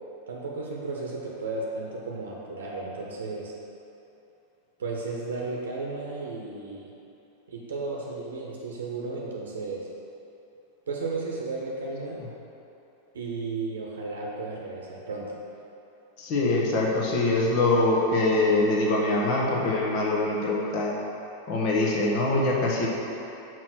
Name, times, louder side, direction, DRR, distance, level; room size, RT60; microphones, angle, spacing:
voice 1, 0.3-3.5 4.8-6.9 7.5-9.9 10.9-12.2 13.1-15.3, right 3 dB, 65° right, -2 dB, 0.9 m, -34 dB
voice 2, 16.2-21.0 21.5-22.9, left 2 dB, 45° left, -3 dB, 1.4 m, -24 dB
6.0 x 4.6 x 6.1 m, 3.0 s
figure-of-eight pair, 90°, 0 cm